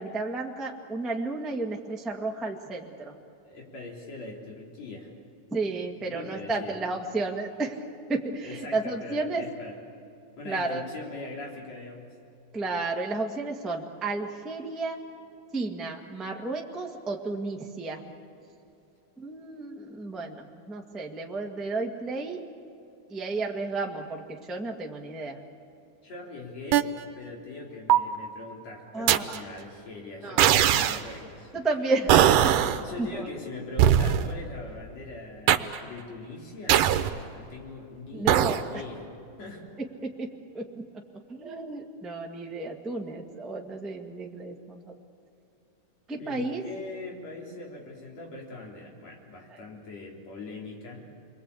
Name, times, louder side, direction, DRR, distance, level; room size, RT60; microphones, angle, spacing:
voice 1, 0.0-3.1 5.5-7.8 8.1-9.4 10.4-10.8 12.5-15.0 15.5-18.1 19.2-22.4 23.1-25.4 28.9-29.4 30.2-30.4 31.5-32.2 32.4-32.5 33.0-33.3 38.1-38.8 40.0-40.3 40.5-40.8 41.3-44.9 46.1-46.6 49.5-49.6, right 3 dB, ahead, 0 dB, 0.7 m, -32 dB
voice 2, 3.4-5.1 6.1-6.8 8.4-9.8 10.4-12.1 26.0-26.9 27.2-31.6 32.8-36.9 37.3-39.1 39.4-39.6 46.1-51.1, left 3 dB, 55° left, -1 dB, 4.8 m, -41 dB
sound 1, 26.7-26.8 27.9-28.2 29.1-29.4 30.4-31.0 32.1-32.8 33.8-34.3 35.5-35.8 36.7-37.2 38.3-38.6, right 11 dB, 85° right, 2.4 m, -20 dB
28.5 x 22.0 x 8.4 m, 2.8 s
omnidirectional pair, 3.6 m